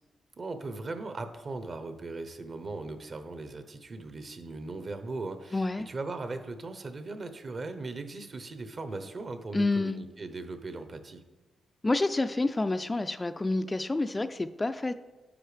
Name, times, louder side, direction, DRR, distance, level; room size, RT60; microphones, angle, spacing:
voice 1, 0.4-11.2, right 3 dB, 45° right, 9 dB, 0.8 m, -38 dB
voice 2, 5.5-5.9 9.5-10.0 11.8-14.9, left 2 dB, 20° left, 10 dB, 0.3 m, -28 dB
9.9 x 6.3 x 3.4 m, 1.1 s
cardioid pair, 85°, 0 cm